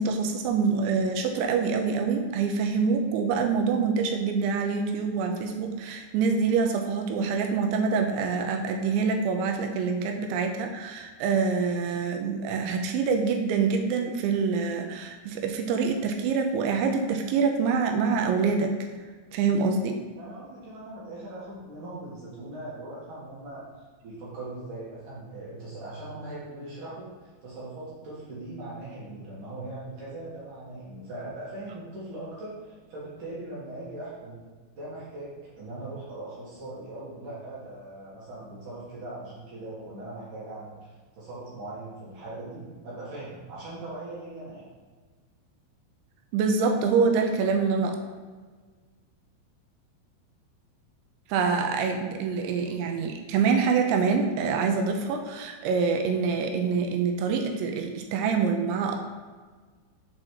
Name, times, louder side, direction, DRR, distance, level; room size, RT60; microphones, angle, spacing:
voice 1, 0.0-18.7 19.3-20.0 46.3-48.0 51.3-59.0, right 5 dB, 80° right, 4 dB, 2.8 m, -25 dB
voice 2, 20.2-34.4 34.8-44.7 52.6-52.7, right 2 dB, 60° right, -7 dB, 2.4 m, -40 dB
7.6 x 4.0 x 4.5 m, 1.4 s
omnidirectional pair, 5.6 m